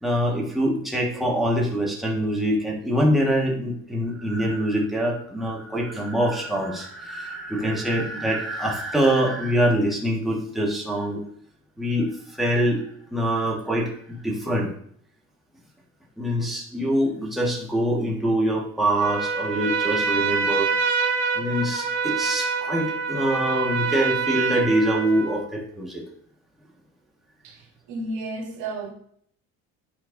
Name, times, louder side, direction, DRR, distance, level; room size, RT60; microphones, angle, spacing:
voice 1, 0.0-11.2 11.8-12.8 13.1-14.7 16.2-20.7 21.3-26.0, right 1 dB, ahead, 1.5 m, -24 dB
Trumpet, 19.0-25.4, right 5 dB, 60° right, 1.6 m, -26 dB
voice 2, 27.4-28.9, right 2 dB, 90° right, 1.7 m, -33 dB
11.5 x 4.5 x 2.6 m
cardioid pair, 145°, 31 cm